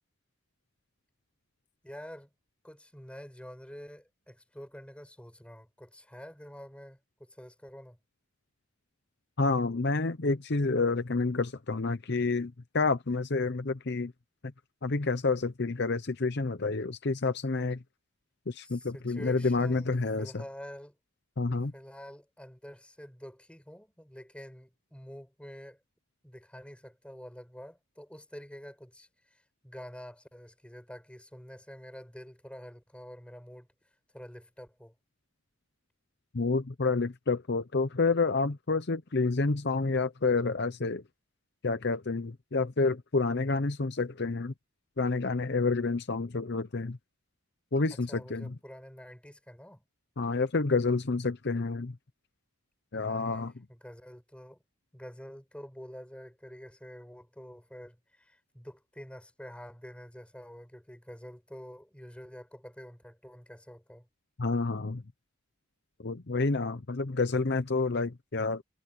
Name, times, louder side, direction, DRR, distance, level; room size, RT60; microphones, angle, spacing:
voice 1, 1.8-2.3 2.6-8.0 18.6-19.9 20.2-21.0 21.7-25.8 26.2-33.7 34.1-34.9 47.9-49.8 53.1-54.6 54.9-64.1, equal, 5° left, 5.8 m, -47 dB
voice 2, 9.4-14.1 14.8-17.8 18.5-20.4 21.4-21.7 36.3-41.0 41.6-44.5 45.0-47.0 47.7-48.5 50.2-52.0 52.9-53.5 64.4-65.0 66.0-68.6, left 3 dB, 50° left, 0.8 m, -29 dB
head